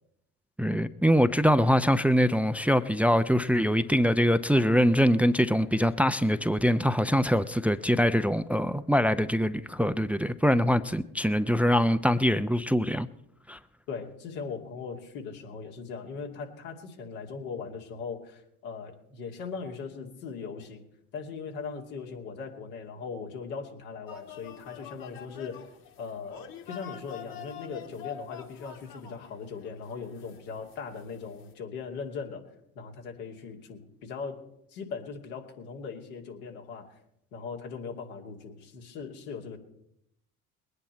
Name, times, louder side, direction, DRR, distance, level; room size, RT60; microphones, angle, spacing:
voice 1, 0.6-13.1 13.5-13.6, equal, 5° right, 0.6 m, -23 dB
voice 2, 13.9-20.8 21.1-25.7 26.0-32.5 32.8-34.4 34.7-36.9 37.3-39.6, left 5 dB, 75° left, 2.5 m, -39 dB
sound 1, 24.1-31.5, left 8 dB, 50° left, 2.2 m, -46 dB
21.5 x 9.6 x 4.4 m
hypercardioid pair, 60°, 43 cm